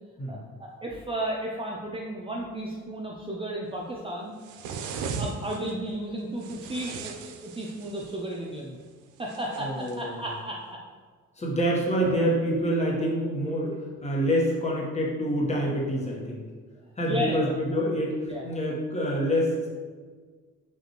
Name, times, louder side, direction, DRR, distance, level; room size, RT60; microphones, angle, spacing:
voice 1, 0.3-4.3 5.2-8.8 9.2-10.8 17.1-17.6 18.2-18.5, right 1 dB, 20° right, -2 dB, 0.4 m, -33 dB
sound 1, 4.4-5.7 6.4-8.2 9.3-10.0, right 5 dB, 80° right, 0.5 m, -37 dB
voice 2, 9.6-10.2 11.4-16.4 17.0-19.7, equal, 20° left, -3 dB, 1.1 m, -27 dB
5.3 x 2.5 x 2.9 m, 1.5 s
cardioid pair, 90°, 30 cm